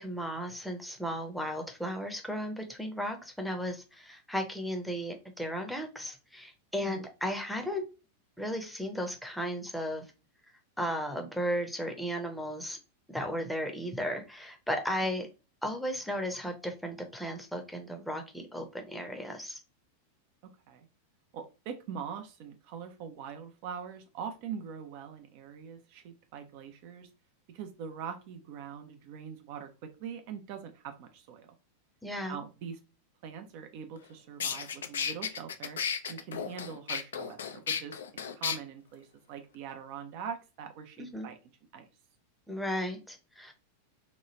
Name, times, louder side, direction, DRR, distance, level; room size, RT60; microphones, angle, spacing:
voice 1, 0.0-7.8 8.4-10.0 10.8-12.8 13.1-15.3 15.6-19.6 32.0-32.4 41.0-41.3 42.5-43.5, equal, ahead, 3 dB, 0.7 m, -35 dB
voice 2, 20.4-20.9 21.3-27.1 27.5-31.5 32.3-32.8 33.2-35.8 36.1-38.0 38.3-41.4 41.7-41.8, right 7 dB, 45° right, 6 dB, 0.5 m, -43 dB
sound 1, 34.0-34.1 34.4-38.6, left 7 dB, 65° left, 0.3 m, -34 dB
2.9 x 2.3 x 3.0 m, 0.30 s
figure-of-eight pair, 90°, 0 cm